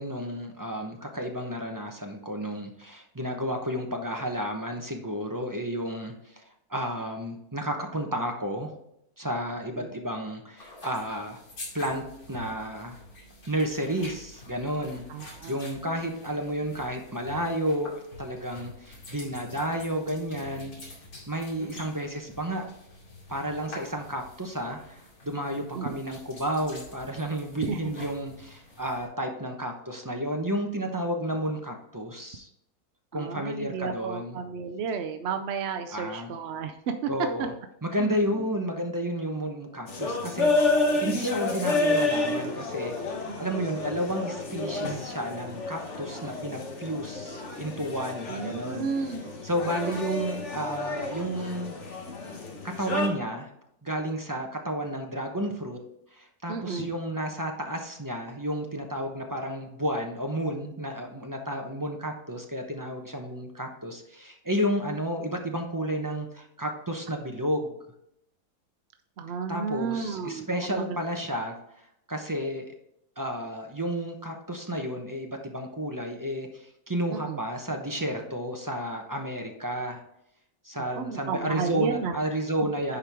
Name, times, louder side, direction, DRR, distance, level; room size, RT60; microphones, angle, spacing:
voice 1, 0.0-6.4 6.7-8.7 9.2-11.4 11.7-12.0 12.3-13.0 13.5-15.0 15.5-17.9 18.2-20.7 21.3-22.6 23.3-32.5 33.1-34.4 35.9-36.3 37.1-37.5 37.8-42.9 43.4-48.9 49.4-51.7 52.6-53.5 53.8-55.8 56.1-67.7 69.5-71.5 72.1-72.7 73.2-80.0 80.6-83.0, equal, 20° right, 2 dB, 0.6 m, -31 dB
sound 1, 10.6-29.1, left 1 dB, 70° left, 2.9 m, -47 dB
voice 2, 15.1-15.6 21.6-21.7 25.7-25.9 27.6-27.8 33.1-37.1 38.0-38.3 43.3-43.7 48.3-49.3 49.6-50.0 56.5-56.9 69.2-71.0 77.1-77.4 81.0-82.1, right 5 dB, 65° right, 6 dB, 0.6 m, -33 dB
sound 2, 39.9-53.1, left 2 dB, 50° left, 1.5 m, -30 dB
10.5 x 4.5 x 3.5 m, 0.78 s
omnidirectional pair, 1.6 m